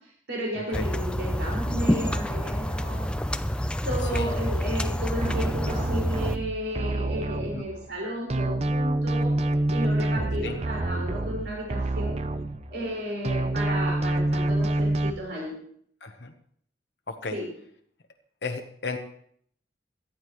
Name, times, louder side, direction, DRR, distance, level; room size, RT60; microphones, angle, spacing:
voice 1, 0.3-3.1 3.8-9.3 9.7-12.2 12.7-15.5 17.3-17.4, equal, 75° right, -2 dB, 5.1 m, -33 dB
sound 1, 0.7-6.4, equal, 5° left, 0.5 m, -27 dB
sound 2, 5.2-8.0 8.3-13.0 13.2-15.1, right 2 dB, 35° right, 0.6 m, -27 dB
voice 2, 16.0-16.3 17.1-17.4 18.4-19.0, left 4 dB, 65° left, 4 dB, 1.0 m, -34 dB
17.5 x 13.0 x 3.1 m, 0.64 s
head